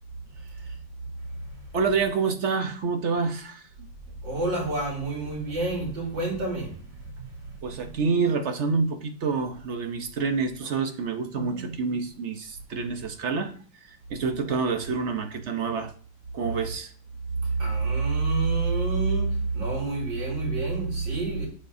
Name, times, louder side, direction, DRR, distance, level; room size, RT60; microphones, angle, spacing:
voice 1, 1.7-3.9 7.6-13.5 13.9-15.9 16.3-16.9, right 4 dB, 55° right, 0.8 m, -27 dB
voice 2, 4.2-8.0 17.4-21.5, right 3 dB, 75° right, 3.8 m, -28 dB
8.3 x 8.1 x 2.7 m
omnidirectional pair, 2.0 m